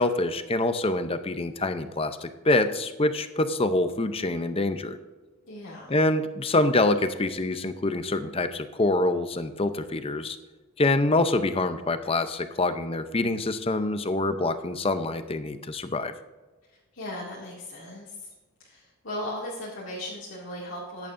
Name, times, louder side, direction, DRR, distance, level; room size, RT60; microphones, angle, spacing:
voice 1, 0.0-5.0 5.9-10.4 10.8-16.1, left 2 dB, 25° left, 10 dB, 0.6 m, -25 dB
voice 2, 5.4-6.0 16.9-18.1 18.7-21.1, left 1 dB, 60° left, -7 dB, 2.3 m, -37 dB
14.5 x 10.5 x 2.6 m, 1.3 s
head